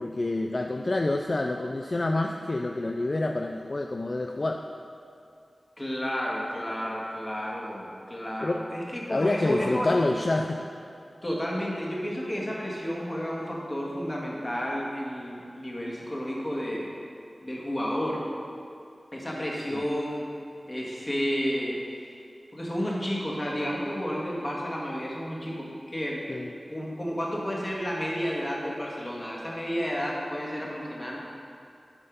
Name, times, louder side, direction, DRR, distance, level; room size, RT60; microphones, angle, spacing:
voice 1, 0.0-4.6 8.4-8.6 9.1-10.6 19.7-19.8 26.3-26.5, left 2 dB, 50° left, 3 dB, 0.4 m, -27 dB
voice 2, 5.8-9.9 11.2-16.9 17.4-18.3 19.1-20.3 20.7-21.8 22.5-26.4 26.7-31.2, equal, 30° left, -3 dB, 1.9 m, -31 dB
8.0 x 5.6 x 5.4 m, 2.5 s
wide cardioid pair, 55°, 0 cm